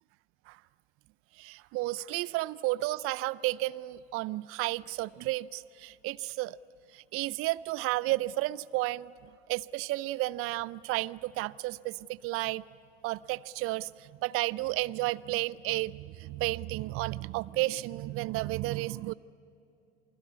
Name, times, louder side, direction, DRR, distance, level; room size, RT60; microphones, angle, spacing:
voice 1, 1.4-6.6 6.9-9.1 9.5-12.6 13.0-19.1, right 18 dB, 45° right, 20 dB, 0.6 m, -32 dB
28.0 x 20.5 x 8.3 m, 2.7 s
hypercardioid pair, 70°, 32 cm